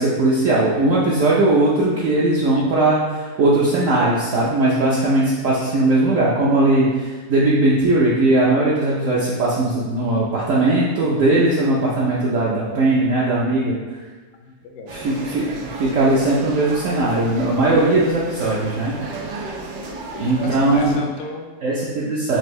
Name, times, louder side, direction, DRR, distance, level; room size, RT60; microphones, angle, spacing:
voice 1, 0.0-13.7 14.9-19.0 20.2-21.0 21.6-22.4, right 2 dB, 65° right, -6 dB, 0.9 m, -19 dB
voice 2, 14.4-15.0 19.9-21.6, left 4 dB, 70° left, 2 dB, 0.9 m, -36 dB
sound 1, 14.9-21.0, right 3 dB, 90° right, 1.2 m, -34 dB
4.4 x 2.6 x 3.1 m, 1.3 s
omnidirectional pair, 1.7 m